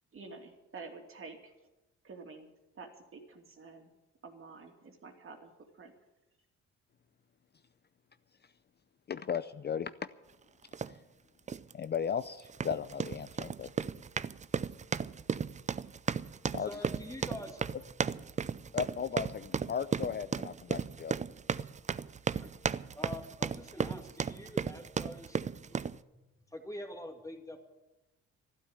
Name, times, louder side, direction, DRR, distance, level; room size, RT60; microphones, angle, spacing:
voice 1, 0.1-1.5 2.0-2.5 2.8-3.9 4.2-5.9, right 4 dB, 45° right, 3 dB, 2.6 m, -49 dB
voice 2, 9.1-9.9 11.7-13.7 16.5-16.7 18.7-21.1, left 7 dB, 35° left, 12 dB, 0.5 m, -36 dB
sound 1, 10.7-10.9 11.5-11.7 12.4-26.0, right 6 dB, 25° right, 0.4 m, -35 dB
voice 3, 16.6-18.0 21.6-21.7 22.4-22.5 23.0-26.2 26.5-27.6, left 1 dB, 10° left, 4 dB, 2.2 m, -46 dB
12.5 x 12.0 x 7.8 m, 1.0 s
cardioid pair, 90°, 30 cm